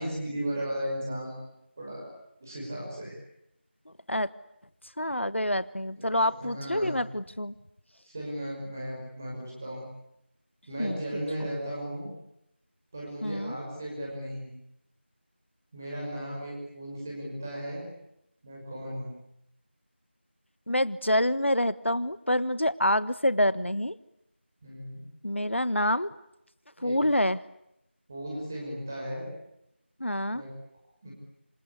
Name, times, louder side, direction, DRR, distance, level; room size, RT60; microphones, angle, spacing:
voice 1, 0.0-1.4 1.8-2.1 2.4-3.2 6.0-7.0 8.1-9.8 10.7-12.1 12.9-14.5 15.7-17.9 18.4-19.1 24.6-25.1 26.8-27.0 28.1-29.3 30.3-30.5 31.0-31.1, equal, 15° right, -3 dB, 5.8 m, -36 dB
voice 2, 5.0-7.5 10.8-11.0 13.2-13.6 20.7-24.0 25.2-26.1 26.8-27.4 30.0-30.4, left 1 dB, 80° left, 16 dB, 1.3 m, -27 dB
27.0 x 26.5 x 8.4 m, 0.81 s
figure-of-eight pair, 175°, 6 cm